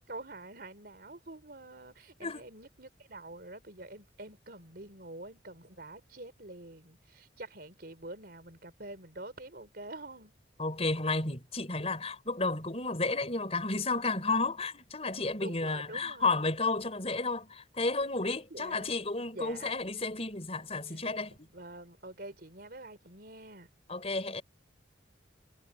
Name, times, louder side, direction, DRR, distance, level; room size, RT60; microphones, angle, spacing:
voice 1, 0.1-10.3 15.4-16.4 18.5-19.0 19.3-19.7 20.9-21.0 21.5-23.7, right 2 dB, 55° right, 4.0 m, -46 dB
voice 2, 10.6-21.5 23.9-24.4, left 3 dB, 35° left, 5.0 m, -32 dB
head